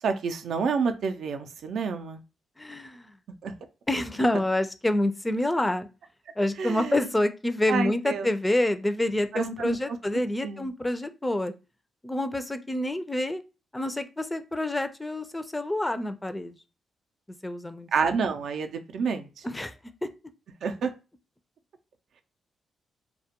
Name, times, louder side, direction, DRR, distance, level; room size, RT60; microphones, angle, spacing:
voice 1, 0.0-2.2 3.4-3.5 6.6-7.1 7.7-8.3 9.3-9.8 10.4-10.7 17.9-19.4 20.6-20.9, right 5 dB, 70° right, 6 dB, 0.4 m, -28 dB
voice 2, 2.6-3.1 3.9-5.9 6.4-11.5 12.0-13.4 13.7-16.6 17.4-17.9 19.4-19.7, left 1 dB, 15° left, 10 dB, 0.4 m, -27 dB
2.2 x 2.1 x 2.8 m, 0.30 s
supercardioid pair, 65°, 0 cm